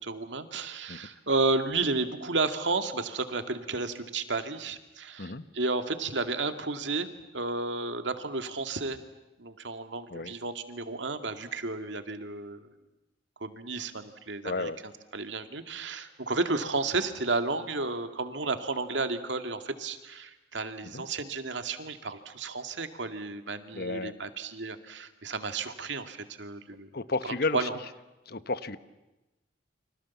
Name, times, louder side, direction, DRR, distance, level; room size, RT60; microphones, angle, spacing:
voice 1, 0.0-7.1 7.3-9.0 9.4-12.6 13.4-14.7 15.1-26.9 27.2-27.8, right 3 dB, 75° right, 7 dB, 2.3 m, -32 dB
voice 2, 14.4-14.8 20.9-21.0 23.7-24.1 26.9-27.7 28.3-28.8, left 3 dB, 55° left, 13 dB, 1.1 m, -32 dB
30.0 x 26.0 x 7.2 m, 1.0 s
head